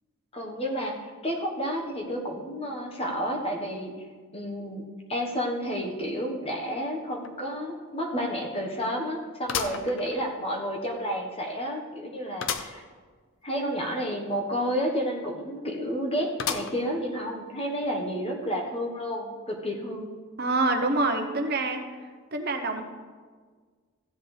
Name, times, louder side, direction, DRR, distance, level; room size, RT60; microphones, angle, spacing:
voice 1, 0.3-3.9 4.3-4.8 5.1-12.8 13.4-20.1, equal, 25° left, 1 dB, 1.3 m, -31 dB
sound 1, 7.2-7.3 7.8-7.9 9.5-10.6 11.1-11.2 12.4-12.8 13.2-13.3 13.5-13.6 16.4-17.0 17.6-17.7 18.7-18.8, left 7 dB, 65° left, 0.6 m, -33 dB
voice 2, 20.4-21.8 22.3-22.8, right 2 dB, 45° right, 5 dB, 1.0 m, -26 dB
15.5 x 7.9 x 3.4 m, 1.5 s
head